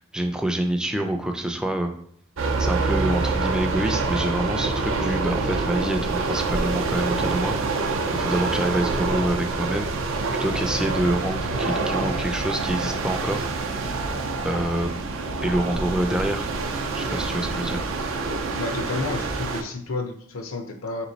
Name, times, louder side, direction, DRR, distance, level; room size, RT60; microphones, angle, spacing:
voice 1, 0.0-1.9 2.6-9.9 10.4-13.5 14.4-14.9 15.4-16.5 16.9-17.8, right 1 dB, 5° right, 4 dB, 0.3 m, -26 dB
sound 1, 2.4-19.6, right 3 dB, 80° right, 0.5 m, -26 dB
voice 2, 18.5-21.1, left 3 dB, 85° left, 6 dB, 0.6 m, -31 dB
3.5 x 3.0 x 3.9 m, 0.67 s
head